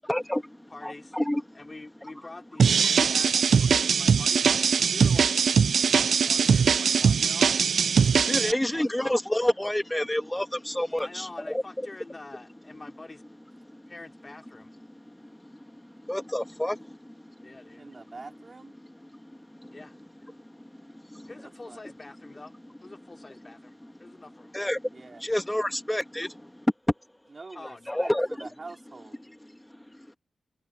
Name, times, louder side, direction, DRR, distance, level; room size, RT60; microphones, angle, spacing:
voice 1, 0.0-1.6 2.0-2.1 3.0-3.1 5.8-6.3 7.9-11.9 13.6-13.9 14.9-17.6 18.1-18.3 18.8-19.8 20.3-21.3 24.0-24.2 24.5-26.7 27.9-28.5 29.2-30.0, left 1 dB, 5° left, 2.1 m, -31 dB
voice 2, 0.7-1.2 1.6-3.3 3.6-5.3 6.2-7.5 8.4-8.9 11.0-13.2 13.9-14.7 17.4-17.9 19.7-19.9 21.3-22.5 22.8-23.7 24.0-24.5 27.5-28.1, left 2 dB, 25° left, 3.7 m, -45 dB
sound 1, 2.6-8.5, right 6 dB, 65° right, 0.4 m, -21 dB
voice 3, 17.8-18.7 21.4-21.8 24.9-25.2 27.3-28.1 28.4-29.2, right 3 dB, 35° right, 3.9 m, -45 dB
wide cardioid pair, 120°, 0 cm